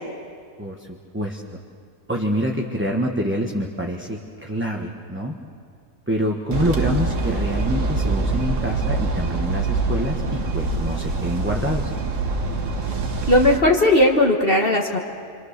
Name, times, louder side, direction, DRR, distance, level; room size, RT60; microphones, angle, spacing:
voice 1, 2.1-5.3 6.1-11.9, equal, 10° right, 0 dB, 1.2 m, -26 dB
sound 1, 6.5-13.6, right 3 dB, 60° right, 1.7 m, -24 dB
voice 2, 13.3-15.0, left 1 dB, 40° left, 0 dB, 1.7 m, -17 dB
27.5 x 25.5 x 6.7 m, 2.2 s
omnidirectional pair, 1.5 m